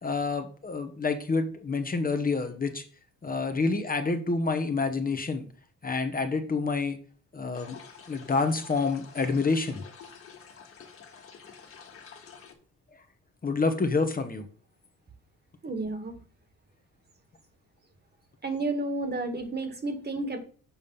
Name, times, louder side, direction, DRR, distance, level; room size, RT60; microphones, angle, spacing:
voice 1, 0.0-2.8 3.2-5.5 5.8-7.0 7.3-7.8 8.1-9.8 13.4-14.4, left 4 dB, 30° left, 7 dB, 1.1 m, -28 dB
sound 1, 7.5-12.5, left 6 dB, 45° left, 1.9 m, -49 dB
voice 2, 15.6-16.2 18.4-20.4, right 2 dB, 35° right, 8 dB, 1.9 m, -31 dB
7.2 x 5.2 x 5.5 m, 0.41 s
cardioid pair, 90°, 30 cm